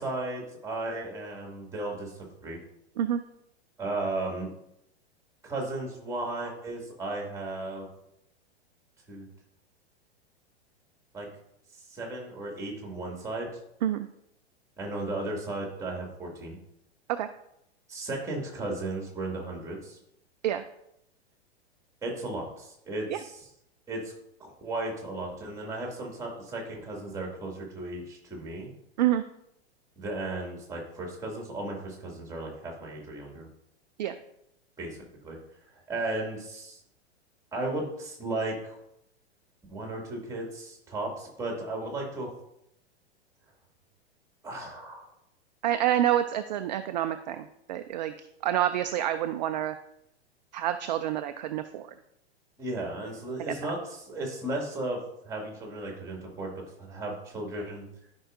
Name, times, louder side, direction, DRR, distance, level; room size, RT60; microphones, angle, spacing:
voice 1, 0.0-2.6 3.8-4.5 5.4-7.9 9.1-9.3 11.1-11.3 11.9-13.5 14.8-16.6 17.9-20.0 22.0-23.4 23.9-24.1 24.4-28.7 30.0-33.5 34.8-35.4 35.9-36.8 37.5-38.8 39.7-42.3 44.4-45.0 52.6-56.5 56.8-57.9, right 2 dB, 10° right, 0 dB, 2.3 m, -35 dB
voice 2, 45.6-48.1 48.4-49.8 50.5-51.9, right 11 dB, 45° right, 9 dB, 0.4 m, -27 dB
13.0 x 5.3 x 2.6 m, 0.79 s
figure-of-eight pair, 100°, 33 cm